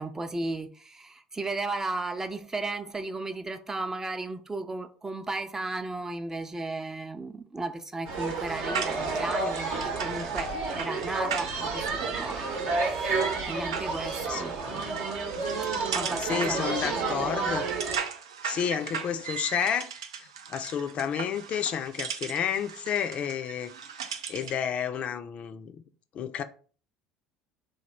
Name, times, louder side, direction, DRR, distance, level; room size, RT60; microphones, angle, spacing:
voice 1, 0.0-14.9 15.9-16.7 16.9-17.4, right 2 dB, 15° right, 0.4 m, -35 dB
sound 1, 8.1-18.0, right 4 dB, 60° right, 0.8 m, -31 dB
sound 2, 8.2-24.6, right 7 dB, 80° right, 0.4 m, -38 dB
voice 2, 14.3-14.8 16.2-17.7 18.4-23.7 24.0-25.7 26.1-26.4, left 8 dB, 45° left, 0.4 m, -31 dB
3.2 x 2.3 x 4.2 m
hypercardioid pair, 70°, 3 cm